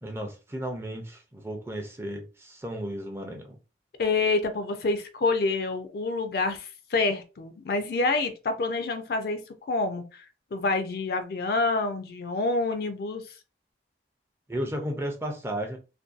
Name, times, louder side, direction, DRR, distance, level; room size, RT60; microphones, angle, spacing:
voice 1, 0.0-3.6 14.5-15.8, right 1 dB, 15° right, 0.4 m, -34 dB
voice 2, 4.0-10.2 10.5-13.2, left 3 dB, 55° left, 0.4 m, -27 dB
2.6 x 2.2 x 2.4 m
head